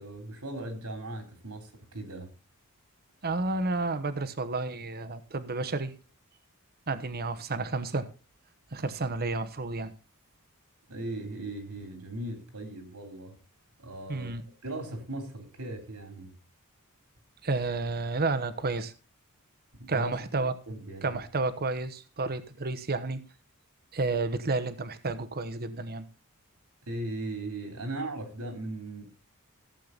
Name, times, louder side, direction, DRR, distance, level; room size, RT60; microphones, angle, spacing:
voice 1, 0.0-2.3 10.9-13.4 13.8-14.3 14.6-16.4 19.8-20.2 20.7-21.1 26.9-29.1, right 2 dB, 85° right, 3.3 m, -38 dB
voice 2, 3.2-5.9 6.9-8.1 8.7-9.9 14.1-14.4 17.4-18.9 19.9-20.5 21.0-23.2 23.9-26.0, right 3 dB, 45° right, 1.0 m, -31 dB
15.5 x 7.7 x 3.9 m
head